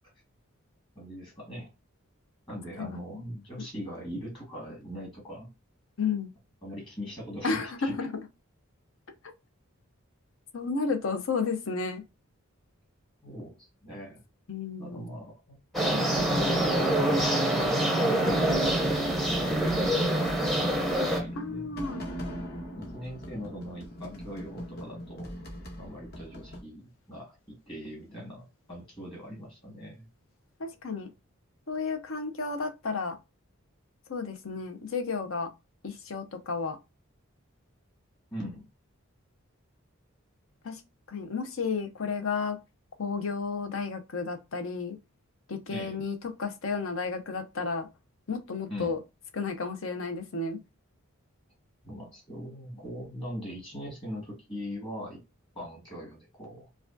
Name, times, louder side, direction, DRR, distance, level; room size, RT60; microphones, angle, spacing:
voice 1, 0.9-1.7 2.5-5.5 6.6-8.1 13.2-14.2 14.8-18.9 20.0-20.4 21.0-21.7 22.7-25.3 25.8-30.0 38.3-38.7 45.7-46.0 48.7-49.0 51.8-55.2 55.5-56.7, equal, 25° left, 1.6 m, -41 dB
voice 2, 6.0-6.3 7.4-8.1 10.5-12.0 14.5-15.1 21.4-22.0 30.6-31.1 31.7-33.2 34.1-35.5 35.8-36.8 40.6-40.8 41.1-42.6 43.0-45.0 45.5-47.9 48.3-49.0 49.3-50.6, left 4 dB, 70° left, 0.7 m, -32 dB
sound 1, 15.7-26.6, equal, 45° left, 1.0 m, -39 dB
sound 2, 15.7-21.2, right 1 dB, ahead, 0.6 m, -25 dB
4.8 x 2.3 x 2.5 m
head